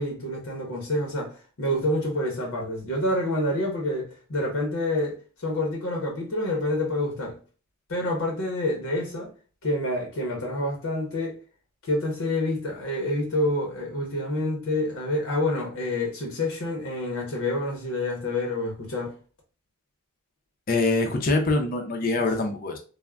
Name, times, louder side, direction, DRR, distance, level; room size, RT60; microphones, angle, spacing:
voice 1, 0.0-1.3 1.6-7.4 7.9-9.3 9.6-11.4 11.8-19.1, left 1 dB, 70° left, 0.7 m, -27 dB
voice 2, 20.7-22.8, left 2 dB, 40° left, 0.4 m, -24 dB
3.4 x 2.0 x 2.2 m
head